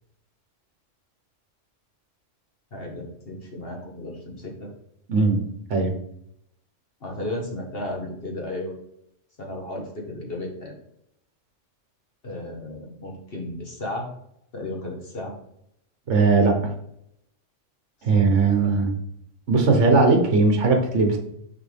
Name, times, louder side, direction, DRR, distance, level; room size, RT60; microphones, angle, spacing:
voice 1, 2.7-4.7 7.0-8.7 9.4-10.7 12.2-14.1 14.5-15.3 18.4-18.5, left 1 dB, 50° left, 0 dB, 1.7 m, -34 dB
voice 2, 5.1-5.4 5.7-6.0 16.1-16.7 18.0-18.9 19.5-21.2, right 3 dB, 70° right, 4 dB, 1.4 m, -19 dB
6.5 x 4.9 x 3.4 m, 0.75 s
omnidirectional pair, 1.3 m